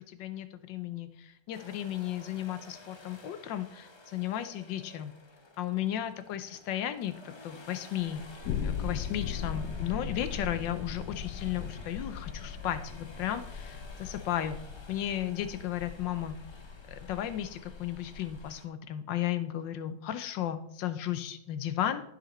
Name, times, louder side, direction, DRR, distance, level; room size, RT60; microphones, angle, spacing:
voice 1, 0.0-5.1 5.6-7.1 7.4-8.2 8.6-14.6 14.9-16.4 16.9-22.0, left 11 dB, 90° left, 11 dB, 1.4 m, -34 dB
sound 1, 1.5-18.7, left 2 dB, 45° left, 0.3 m, -53 dB
sound 2, 8.0-18.5, left 6 dB, 70° left, 1.2 m, -39 dB
14.0 x 5.1 x 4.3 m, 0.74 s
omnidirectional pair, 2.0 m